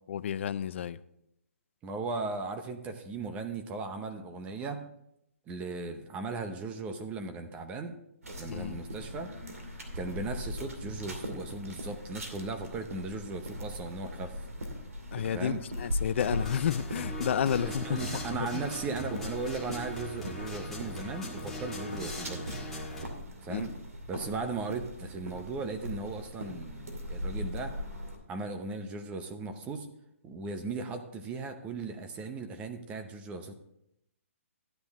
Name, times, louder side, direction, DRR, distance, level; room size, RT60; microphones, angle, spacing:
voice 1, 0.1-1.0 8.5-8.8 15.1-18.0 18.3-18.6 23.5-23.7, left 8 dB, 55° left, 0.5 m, -31 dB
voice 2, 1.8-4.8 5.5-8.0 8.4-9.3 9.9-14.4 15.3-15.6 17.5-22.4 23.4-23.7 24.1-27.8 28.3-29.9 30.2-33.5, right 3 dB, 15° right, 0.8 m, -37 dB
sound 1, 8.2-28.2, left 1 dB, 90° right, 2.4 m, -40 dB
sound 2, 16.2-23.1, equal, 5° left, 1.6 m, -40 dB
13.0 x 9.7 x 3.6 m
hypercardioid pair, 150°, 8 cm